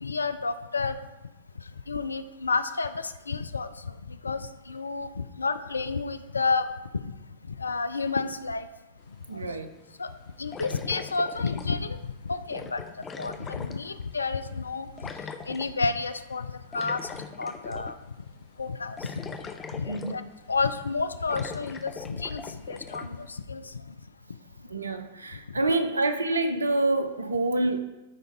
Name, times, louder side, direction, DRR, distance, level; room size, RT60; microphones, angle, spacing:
voice 1, 0.0-1.0 1.9-3.7 4.1-6.6 6.9-7.1 7.5-8.7 10.0-10.1 10.4-12.0 12.2-12.8 13.2-15.1 15.5-17.0 17.4-17.9 18.6-19.0 19.7-20.2 20.5-23.6, left 4 dB, 80° left, 11 dB, 0.5 m, -30 dB
Airlock homebrew mash, 9.1-9.2 10.5-12.0 12.5-14.3 15.0-15.7 16.7-18.0 18.4-18.5 19.0-20.4 20.8-20.9 21.3-23.1, left 5 dB, 20° left, 0.7 m, -41 dB
voice 2, 9.3-9.7 19.9-20.3 24.7-27.8, right 2 dB, 80° right, 8 dB, 0.9 m, -27 dB
13.5 x 5.2 x 3.7 m, 1.0 s
figure-of-eight pair, 100°, 0 cm